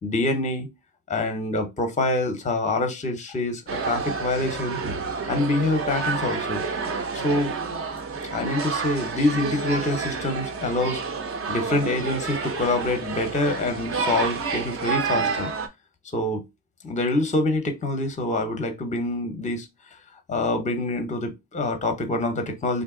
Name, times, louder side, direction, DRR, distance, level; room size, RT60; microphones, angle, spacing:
voice 1, 0.0-0.7 1.1-3.6 3.9-4.8 5.3-6.7 7.1-7.5 8.3-11.0 11.5-15.5 16.1-16.5 16.8-19.7 20.3-22.8, left 2 dB, 15° left, 0.7 m, -25 dB
sound 1, 3.7-15.7, right 5 dB, 35° right, 0.6 m, -29 dB
3.2 x 2.7 x 3.7 m
cardioid pair, 150°, 41 cm